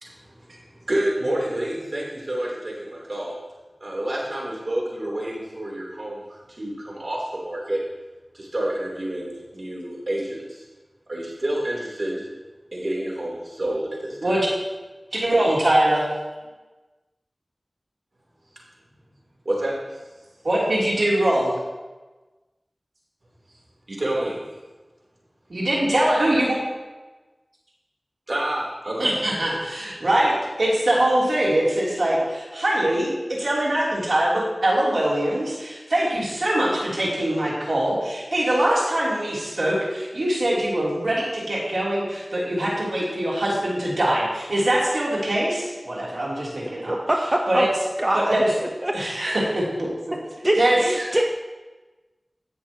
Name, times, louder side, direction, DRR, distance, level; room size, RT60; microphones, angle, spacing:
voice 1, 0.0-3.3 3.8-7.8 8.3-10.7 11.1-12.3 12.7-14.3 19.4-20.0 23.9-24.4 28.3-29.2 30.1-30.3, right 1 dB, 65° right, -4 dB, 3.1 m, -29 dB
voice 2, 15.1-16.1 20.4-21.5 25.5-26.6 29.0-47.0 47.5-47.7 48.1-48.5 48.9-49.9 50.6-51.1, right 1 dB, 85° right, -6 dB, 2.9 m, -23 dB
voice 3, 48.0-48.4 48.8-48.9 49.2-49.4 50.4-51.2, right 1 dB, 35° right, 1 dB, 0.8 m, -23 dB
17.0 x 6.2 x 2.9 m, 1.2 s
wide cardioid pair, 40°, 0 cm